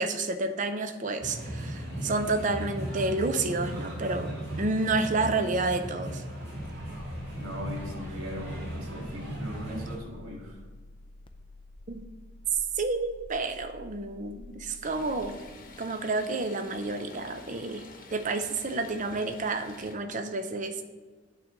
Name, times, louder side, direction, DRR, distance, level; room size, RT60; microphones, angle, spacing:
voice 1, 0.0-6.2 11.9-12.0 12.8-15.4 15.8-17.8 18.1-20.8, right 3 dB, 35° right, 8 dB, 0.5 m, -30 dB
sound 1, 1.2-10.0, equal, 55° right, 2.2 m, -37 dB
sound 2, 6.6-15.4, left 2 dB, 25° left, 0.4 m, -49 dB
voice 2, 7.4-10.6, equal, 85° right, -2 dB, 1.9 m, -39 dB
Stream, 14.8-19.9, left 3 dB, 40° left, 1.0 m, -49 dB
8.8 x 3.8 x 6.6 m, 1.4 s
head